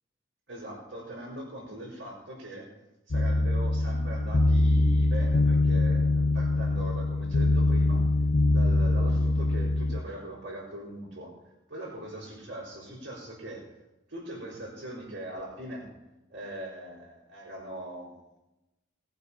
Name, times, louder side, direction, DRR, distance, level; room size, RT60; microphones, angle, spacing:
voice 1, 0.5-2.7 3.1-8.1 8.5-11.3 11.7-13.8 14.1-15.9 16.3-18.2, right 1 dB, 70° right, -7 dB, 4.5 m, -41 dB
sound 1, 3.1-10.0, left 2 dB, 55° left, 0.6 m, -23 dB
19.0 x 7.8 x 5.7 m, 0.95 s
head